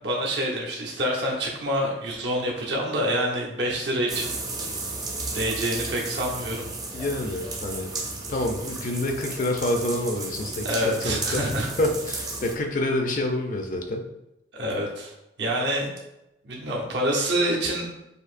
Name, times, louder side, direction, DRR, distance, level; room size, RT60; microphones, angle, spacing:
voice 1, 0.0-4.4 5.3-6.7 10.6-11.7 14.5-15.1 15.4-15.9 16.4-17.9, right 1 dB, 70° right, -2 dB, 0.9 m, -27 dB
sound 1, 4.1-12.5, right 3 dB, 20° right, 0.6 m, -34 dB
voice 2, 6.9-7.9 8.3-11.5 11.8-14.1, left 1 dB, 45° left, 3 dB, 0.5 m, -27 dB
6.5 x 2.7 x 2.5 m, 0.89 s
head